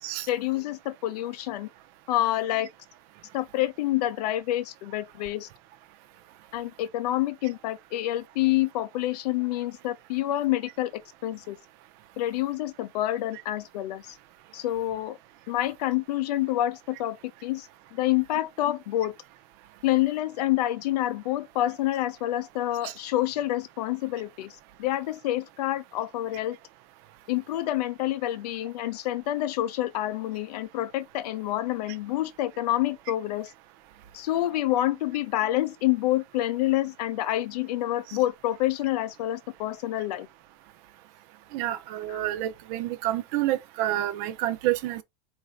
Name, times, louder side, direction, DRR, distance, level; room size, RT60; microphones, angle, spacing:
voice 1, 0.3-1.7 2.1-2.7 3.3-5.5 6.5-11.6 12.2-14.2 14.5-15.2 15.5-17.2 17.4-19.1 19.8-26.6 27.3-33.5 34.1-40.3 42.1-42.2, left 14 dB, 70° left, 0.6 m, -28 dB
voice 2, 41.5-45.0, right 14 dB, 35° right, 0.5 m, -28 dB
4.8 x 2.6 x 3.1 m
supercardioid pair, 165°, 21 cm